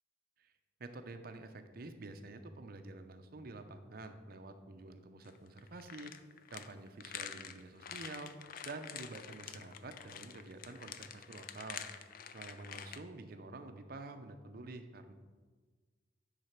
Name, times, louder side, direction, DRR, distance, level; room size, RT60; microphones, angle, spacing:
voice 1, 0.8-6.1 6.5-8.3 8.6-11.8 12.3-15.1, right 2 dB, 55° right, 8 dB, 0.6 m, -48 dB
sound 1, 5.2-13.0, left 8 dB, 50° left, 0.4 m, -47 dB
9.7 x 4.1 x 5.8 m, 1.4 s
head